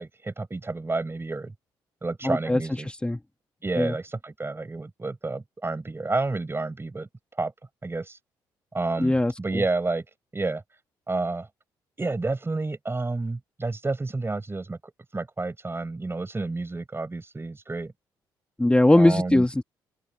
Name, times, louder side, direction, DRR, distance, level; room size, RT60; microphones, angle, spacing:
voice 1, 0.0-1.5 2.0-2.9 3.6-7.1 7.4-7.5 7.8-8.2 8.7-10.0 10.3-10.6 11.1-11.5 12.0-14.8 15.1-17.9 18.9-19.4, right 3 dB, 25° right, 7.6 m, -30 dB
voice 2, 2.2-3.2 3.8-4.0 9.0-9.6 18.6-19.6, left 1 dB, 10° left, 1.7 m, -21 dB
hypercardioid pair, 50°, 10 cm